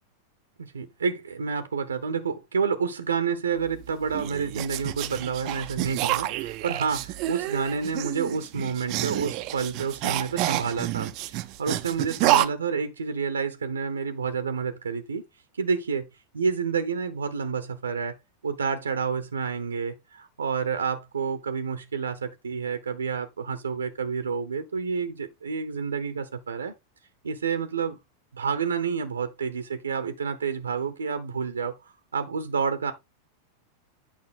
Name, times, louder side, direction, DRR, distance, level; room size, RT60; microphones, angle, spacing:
voice 1, 0.6-15.2 15.6-16.1 16.3-18.2 18.4-26.7 27.2-28.0 28.3-32.9, right 5 dB, 70° right, 0.9 m, -29 dB
sound 1, 3.7-12.5, right 15 dB, 40° right, 0.6 m, -29 dB
9.0 x 5.6 x 3.8 m
figure-of-eight pair, 90°, 0 cm